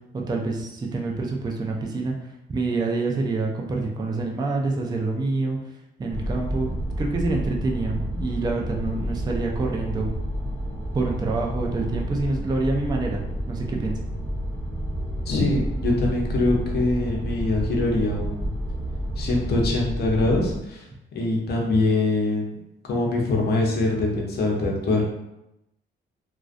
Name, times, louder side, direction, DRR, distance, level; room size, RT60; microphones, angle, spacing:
voice 1, 0.3-2.1 2.5-5.6 6.0-10.1 10.9-14.0, right 3 dB, 20° right, 0 dB, 0.4 m, -27 dB
sound 1, 6.1-20.6, equal, 10° left, 0.7 m, -30 dB
voice 2, 15.3-18.5 19.2-20.8 21.1-22.6 22.9-25.1, left 2 dB, 55° left, -1 dB, 0.7 m, -23 dB
2.3 x 2.1 x 2.5 m, 0.88 s
cardioid pair, 90°, 20 cm